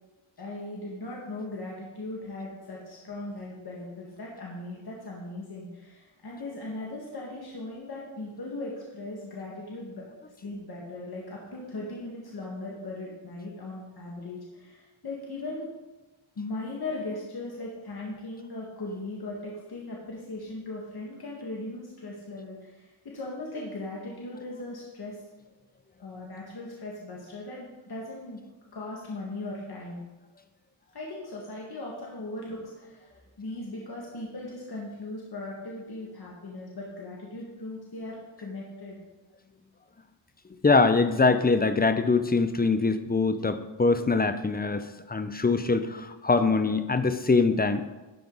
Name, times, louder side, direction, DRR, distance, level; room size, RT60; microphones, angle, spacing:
voice 1, 0.4-15.7 16.4-25.2 26.0-28.4 28.7-30.0 30.9-33.1 33.4-39.0, left 2 dB, 50° left, -4 dB, 2.0 m, -38 dB
voice 2, 40.6-47.8, left 4 dB, 20° left, 10 dB, 0.6 m, -23 dB
12.0 x 5.2 x 4.0 m, 1.1 s
cardioid pair, 65°, 48 cm